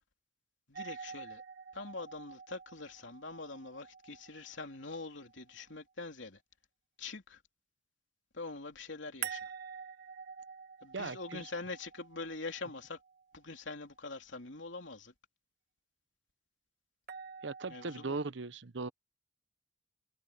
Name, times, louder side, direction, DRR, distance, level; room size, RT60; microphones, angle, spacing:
voice 1, 0.7-1.4 1.7-6.4 7.0-7.4 8.3-9.5 10.8-13.0 13.3-15.1 17.7-18.2, left 3 dB, 80° left, 3.1 m, -44 dB
sound 1, 0.7-5.7 9.2-13.3 17.1-18.3, right 7 dB, 50° right, 1.8 m, -47 dB
voice 2, 10.9-11.5 17.4-18.9, right 3 dB, 75° right, 1.0 m, -38 dB
head